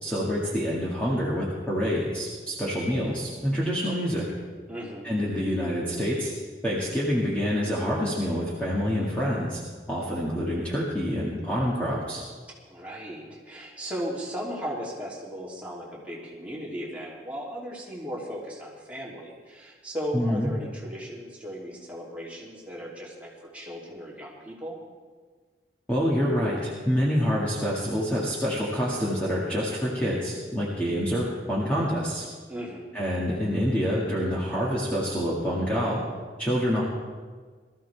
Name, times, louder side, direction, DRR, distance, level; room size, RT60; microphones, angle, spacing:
voice 1, 0.0-4.2 5.0-6.3 6.6-9.6 9.9-12.2 20.1-20.5 25.9-32.3 32.9-36.0 36.4-36.8, equal, 5° left, -7 dB, 2.0 m, -27 dB
voice 2, 4.7-5.1 12.7-24.7 32.5-32.9, equal, 10° right, -6 dB, 3.0 m, -36 dB
20.5 x 14.0 x 3.5 m, 1.5 s
head